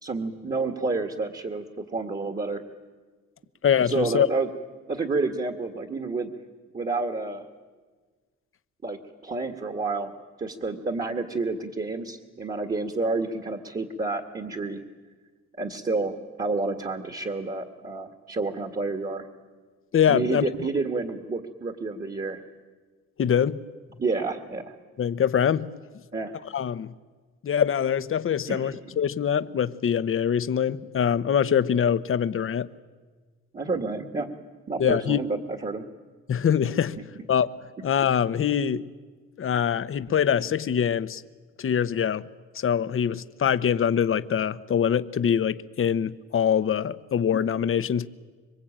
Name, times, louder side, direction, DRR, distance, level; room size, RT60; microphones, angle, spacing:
voice 1, 0.0-2.6 3.9-4.5 4.9-6.3 6.7-7.5 8.8-14.8 15.6-19.3 20.1-22.4 24.0-24.8 26.1-26.3 28.5-28.8 33.5-34.4 34.7-35.8, right 3 dB, 30° right, 2.1 m, -29 dB
voice 2, 3.6-4.3 19.9-20.4 23.2-23.7 25.0-25.7 26.5-26.9 27.4-32.7 34.8-35.2 36.3-37.0 37.3-37.5 37.8-38.9 39.4-41.2 41.6-42.3 42.5-48.1, left 8 dB, 45° left, 1.0 m, -24 dB
26.5 x 23.5 x 9.0 m
cardioid pair, 90°, 30 cm